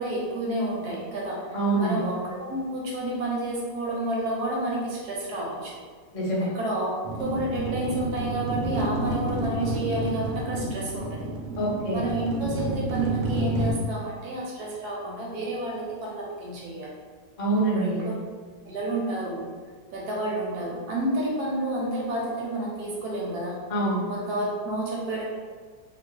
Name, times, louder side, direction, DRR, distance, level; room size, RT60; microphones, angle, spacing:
voice 1, 0.0-5.8 6.4-6.9 7.2-11.3 11.9-16.9 17.7-18.1 18.7-19.5 19.9-23.6 24.1-25.2, right 1 dB, 70° right, -4 dB, 1.1 m, -30 dB
voice 2, 1.5-2.1 6.1-6.5 11.6-12.0 17.4-18.1 23.7-24.0, right 2 dB, 35° left, -7 dB, 0.6 m, -25 dB
sound 1, 7.1-13.7, right 2 dB, 85° right, 1.3 m, -29 dB
2.9 x 2.3 x 3.1 m, 1.6 s
omnidirectional pair, 1.9 m